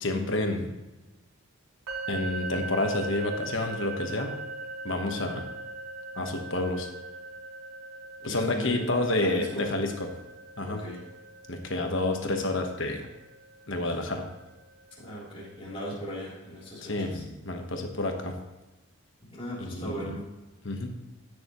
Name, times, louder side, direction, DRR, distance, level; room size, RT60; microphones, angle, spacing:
voice 1, 0.0-0.7 2.1-4.3 4.8-5.5 6.1-6.9 8.2-10.1 10.6-10.8 11.5-13.1 13.7-14.2 16.8-18.3 19.6-20.1 20.6-20.9, left 2 dB, 60° left, 4 dB, 1.3 m, -29 dB
sound 1, 1.9-15.7, right 2 dB, 85° right, 3.3 m, -41 dB
voice 2, 8.2-8.8 9.2-9.6 10.6-11.0 15.0-17.2 19.3-20.3, equal, 25° left, -6 dB, 3.6 m, -38 dB
16.5 x 6.8 x 3.1 m, 1.1 s
head